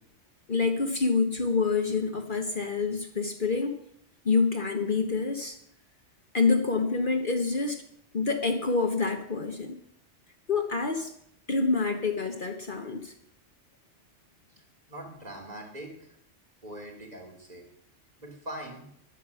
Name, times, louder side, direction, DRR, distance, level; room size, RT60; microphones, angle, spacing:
voice 1, 0.5-3.8 4.2-5.6 6.3-7.8 8.1-9.8 10.5-11.1 11.5-13.1, left 4 dB, 45° left, 5 dB, 1.2 m, -27 dB
voice 2, 14.9-16.2 16.6-17.6 18.2-18.9, right 1 dB, 35° right, 0 dB, 3.1 m, -42 dB
10.5 x 9.6 x 7.0 m, 0.71 s
omnidirectional pair, 1.2 m